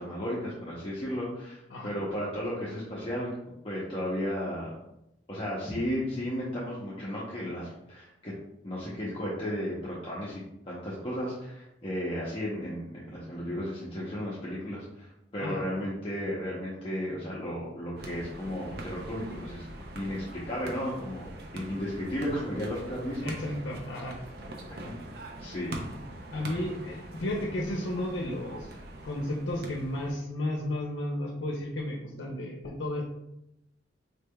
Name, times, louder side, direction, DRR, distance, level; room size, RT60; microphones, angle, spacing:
voice 1, 0.0-3.3 3.6-4.8 5.3-8.3 8.6-19.7 19.9-23.3 25.4-25.8, equal, 30° left, -7 dB, 0.7 m, -34 dB
sound 1, 18.0-30.1, right 1 dB, 60° right, 0.6 m, -43 dB
voice 2, 23.2-24.2 26.3-28.7 29.0-33.0, left 1 dB, 85° left, -1 dB, 0.6 m, -33 dB
4.3 x 3.2 x 2.2 m, 0.85 s
head